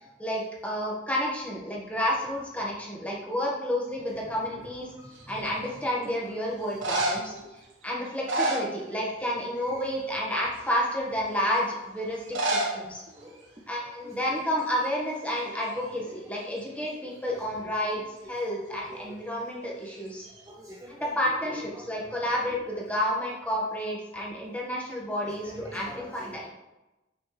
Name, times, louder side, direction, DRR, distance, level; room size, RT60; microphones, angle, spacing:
voice 1, 0.2-4.9 5.3-13.0 13.7-20.3 20.9-26.5, equal, 10° left, -4 dB, 1.3 m, -30 dB
voice 2, 5.0-5.4 6.0-6.1 7.3-7.5 13.2-13.3 14.0-14.1 18.9-19.3 20.5-21.1 22.2-22.3 25.2-26.3, right 1 dB, 15° right, -2 dB, 0.5 m, -46 dB
sound 1, 5.2-5.7 6.6-7.4 8.1-9.3 9.6-9.9 10.5-10.6 12.2-12.8 13.1-13.2 13.4-13.5 14.2-14.4 14.7-15.9 19.9-20.5, right 1 dB, 85° right, 1.1 m, -30 dB
6.2 x 5.6 x 3.2 m, 1.0 s
head